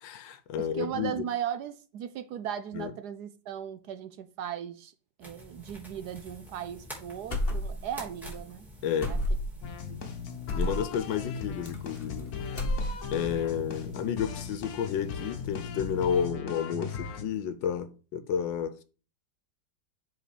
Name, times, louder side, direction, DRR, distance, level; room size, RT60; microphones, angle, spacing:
voice 1, 0.0-1.2 2.7-2.9 8.8-9.1 10.6-12.3 13.1-18.8, left 8 dB, 80° left, 1.5 m, -31 dB
voice 2, 0.6-4.9 5.2-8.7 9.1-9.2 9.9-10.0, right 9 dB, 70° right, 1.1 m, -37 dB
sound 1, 5.2-16.3, equal, ahead, 3.3 m, -49 dB
sound 2, 7.3-8.0 8.2-8.4 9.0-9.6 10.5-10.8 11.6-12.2 12.5-13.2, left 1 dB, 30° left, 1.6 m, -30 dB
sound 3, 9.6-17.2, left 6 dB, 60° left, 1.3 m, -38 dB
7.6 x 4.3 x 4.9 m
omnidirectional pair, 2.0 m